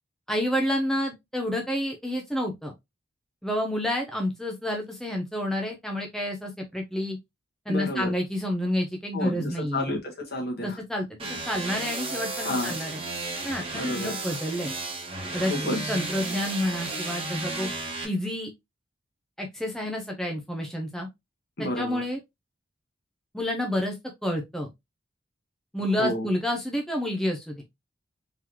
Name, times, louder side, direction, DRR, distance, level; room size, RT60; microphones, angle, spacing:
voice 1, 0.3-2.7 3.4-7.2 7.7-9.9 10.6-13.0 13.4-14.7 15.3-17.7 18.0-18.5 19.4-21.1 21.8-22.2 23.3-23.9 24.2-24.7 25.7-27.5, left 1 dB, ahead, 0.6 m, -29 dB
voice 2, 7.7-8.1 9.1-10.8 12.4-12.8 13.7-14.1 15.5-15.9 21.6-22.0 26.0-26.3, left 1 dB, 55° left, 1.5 m, -31 dB
sound 1, 11.2-18.0, right 2 dB, 30° right, 1.1 m, -33 dB
3.8 x 3.0 x 3.0 m
head